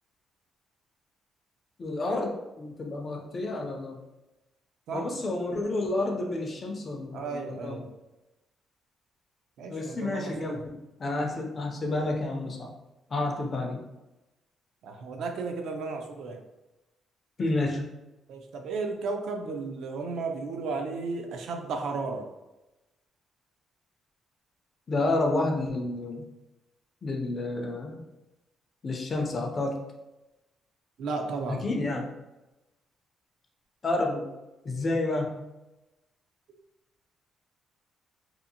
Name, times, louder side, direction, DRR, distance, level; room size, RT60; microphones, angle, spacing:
voice 1, 1.8-4.0 4.9-7.8 9.7-12.7 13.1-13.8 17.4-17.9 24.9-26.3 27.0-28.0 28.8-29.8 31.5-32.1 33.8-34.3 34.6-35.5, left 2 dB, 25° left, 2 dB, 0.4 m, -30 dB
voice 2, 7.1-7.9 9.6-10.6 14.8-16.4 18.3-22.3 31.0-31.6, right 4 dB, 65° right, 4 dB, 0.4 m, -34 dB
2.7 x 2.4 x 2.6 m, 1.0 s
cardioid pair, 170°, 0 cm